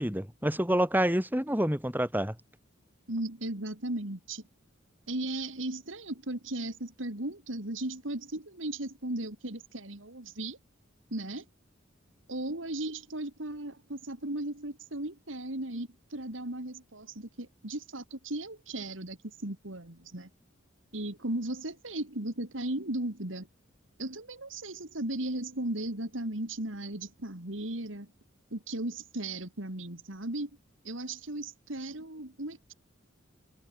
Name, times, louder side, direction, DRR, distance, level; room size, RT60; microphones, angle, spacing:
voice 1, 0.0-2.4, right 1 dB, 10° right, 4.8 m, -28 dB
voice 2, 3.1-4.4 5.1-10.6 11.1-11.4 12.3-20.3 20.9-23.5 24.0-28.1 28.5-30.5 30.8-32.7, right 1 dB, 75° right, 3.3 m, -36 dB
head